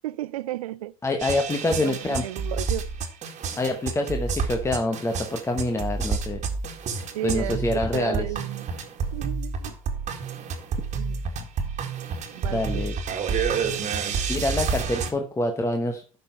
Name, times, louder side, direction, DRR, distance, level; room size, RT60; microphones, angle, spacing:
voice 1, 0.0-0.9 1.6-2.9 7.1-8.7 9.1-9.7 11.0-11.2 12.3-12.9, right 15 dB, 85° right, 0.5 m, -33 dB
voice 2, 1.0-2.2 3.6-6.4 7.2-8.2 12.5-12.9 14.3-16.0, left 2 dB, 15° left, 1.2 m, -26 dB
sound 1, 1.2-15.1, right 5 dB, 40° right, 1.8 m, -29 dB
10.5 x 5.9 x 4.5 m
hypercardioid pair, 85°, 18 cm